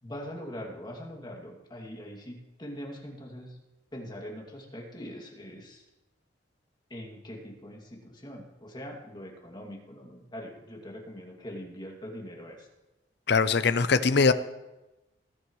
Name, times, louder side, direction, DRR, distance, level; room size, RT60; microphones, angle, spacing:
voice 1, 0.0-3.6 3.9-5.8 6.9-12.7, equal, 25° left, -1 dB, 2.4 m, -42 dB
voice 2, 13.3-14.3, left 4 dB, 60° left, 12 dB, 0.6 m, -22 dB
20.0 x 11.5 x 3.2 m, 1.0 s
head